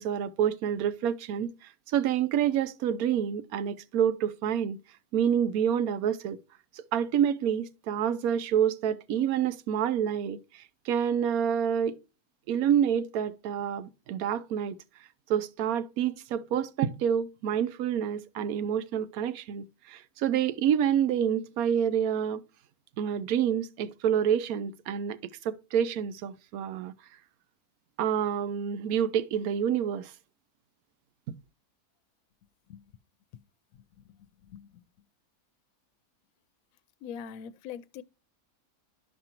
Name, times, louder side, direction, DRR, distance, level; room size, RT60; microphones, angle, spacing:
voice 1, 0.0-1.5 1.9-4.8 5.1-6.4 6.7-12.0 12.5-14.8 15.3-22.4 23.0-25.2 25.4-27.0 28.0-30.1, right 9 dB, 75° right, 1.1 m, -28 dB
voice 2, 34.4-34.8 37.0-38.0, left 8 dB, 70° left, 0.9 m, -42 dB
12.0 x 5.3 x 2.9 m
omnidirectional pair, 1.6 m